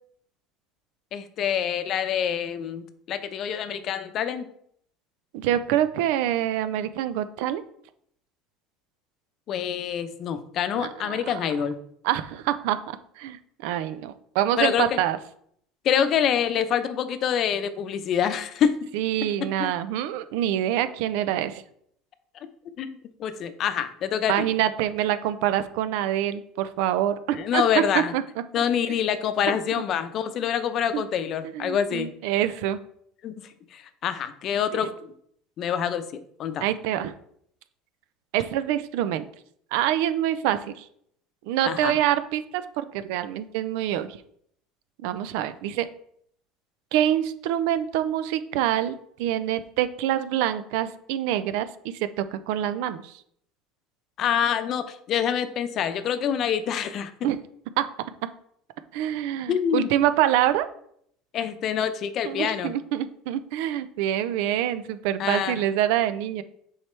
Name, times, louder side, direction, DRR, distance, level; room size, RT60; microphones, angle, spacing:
voice 1, 1.1-4.5 9.5-11.8 14.6-15.0 15.8-18.8 19.6-19.7 22.4-22.5 22.8-22.9 23.2-24.5 27.3-28.1 28.5-32.1 33.2-33.4 33.7-34.9 35.6-36.6 41.6-42.0 54.2-57.1 59.5-59.9 61.3-62.7 65.2-65.6, left 8 dB, 50° left, 10 dB, 0.7 m, -26 dB
voice 2, 5.3-7.6 10.8-11.2 12.0-15.2 18.9-21.6 24.3-28.2 29.5-29.6 30.9-31.0 31.5-32.8 36.6-37.1 38.3-39.3 39.7-40.9 41.4-44.2 45.0-45.9 46.9-51.7 52.0-53.1 57.2-57.4 57.8-57.9 58.9-60.7 62.2-66.4, right 12 dB, 75° right, 12 dB, 0.5 m, -26 dB
7.2 x 4.7 x 3.3 m, 0.68 s
supercardioid pair, 100°, 0 cm